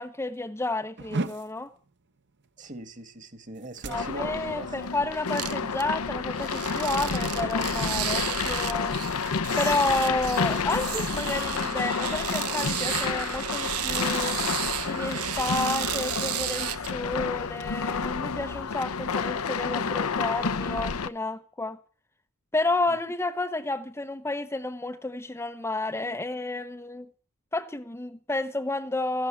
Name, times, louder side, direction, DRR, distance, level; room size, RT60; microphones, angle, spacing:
voice 1, 0.0-1.7 3.9-8.9 9.6-14.4 14.8-21.8 22.5-27.1 27.5-29.3, left 2 dB, 10° left, 0.7 m, -31 dB
sound 1, 1.0-10.6 10.9-11.3 11.7-11.9 12.5-14.4, right 2 dB, 55° right, 1.2 m, -40 dB
voice 2, 2.6-4.8 22.9-23.0, right 2 dB, 35° right, 1.8 m, -40 dB
sound 2, 3.9-21.1, left 5 dB, 70° left, 0.8 m, -30 dB
sound 3, 5.3-5.8 6.3-17.5 18.0-18.6, right 12 dB, 75° right, 0.8 m, -33 dB
14.5 x 11.5 x 8.6 m
head